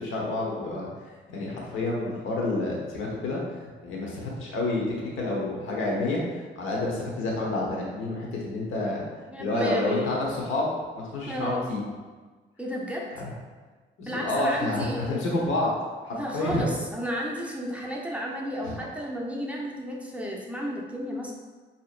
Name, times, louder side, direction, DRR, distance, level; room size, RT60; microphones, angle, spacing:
voice 1, 0.0-6.2 6.6-9.0 9.4-11.8 13.1-13.3 14.0-15.7 16.0-16.7 18.6-18.8, left 2 dB, 85° left, -2 dB, 1.0 m, -29 dB
voice 2, 9.3-10.2 11.3-11.7 12.6-13.0 14.1-15.2 16.1-21.3, equal, 5° right, -3 dB, 0.7 m, -32 dB
5.0 x 2.8 x 2.4 m, 1.4 s
cardioid pair, 90°, 20 cm